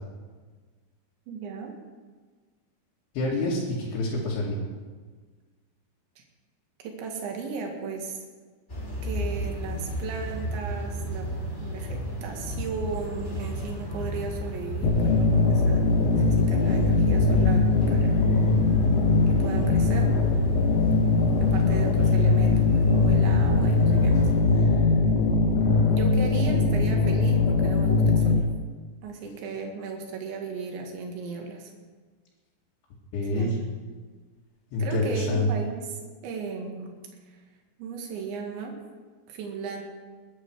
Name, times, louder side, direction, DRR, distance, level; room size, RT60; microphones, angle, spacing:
voice 1, 1.3-1.7 6.2-6.3 6.8-8.2 9.0-18.3 19.3-20.1 21.4-25.0 25.9-28.5 29.0-31.7 33.3-33.6 34.8-36.9 37.3-37.4 37.8-38.7 39.3-39.8, right 5 dB, 85° right, 1 dB, 4.2 m, -36 dB
voice 2, 3.1-4.6 33.1-33.6 34.7-35.5, left 2 dB, 85° left, -7 dB, 4.7 m, -27 dB
sound 1, 8.7-24.4, equal, 15° left, 2.5 m, -33 dB
sound 2, 14.8-28.4, left 3 dB, 65° left, 2.0 m, -21 dB
21.5 x 10.5 x 4.8 m, 1.5 s
omnidirectional pair, 5.1 m